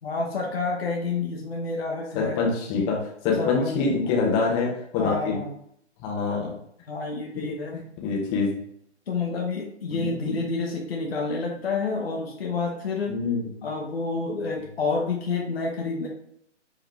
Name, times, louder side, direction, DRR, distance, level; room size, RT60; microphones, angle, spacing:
voice 1, 0.0-2.4 3.4-4.1 4.9-5.5 6.9-7.8 9.1-13.2 13.6-16.1, left 4 dB, 55° left, 0 dB, 1.0 m, -29 dB
voice 2, 2.1-3.0 3.2-5.4 6.0-6.5 8.0-8.5 9.9-10.4 13.1-13.4, left 4 dB, 10° left, -3 dB, 0.7 m, -25 dB
5.1 x 3.0 x 3.3 m, 0.71 s
figure-of-eight pair, 130°, 37 cm